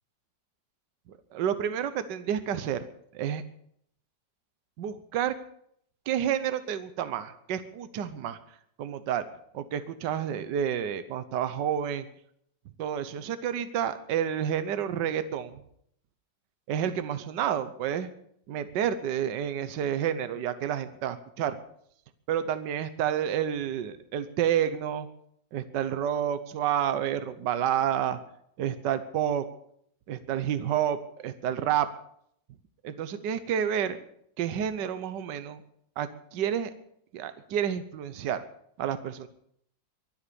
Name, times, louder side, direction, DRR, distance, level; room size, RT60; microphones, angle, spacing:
voice 1, 1.3-2.9 3.1-3.4 4.8-5.3 6.1-8.4 8.8-9.3 9.5-12.1 12.8-15.6 16.7-18.1 18.5-21.6 22.3-25.1 25.5-28.2 28.6-29.4 30.1-31.9 32.8-34.0 34.4-35.6 36.0-36.7 37.1-38.5 38.8-39.3, right 9 dB, 70° right, 12 dB, 1.5 m, -29 dB
23.5 x 8.0 x 6.9 m, 0.69 s
omnidirectional pair, 2.0 m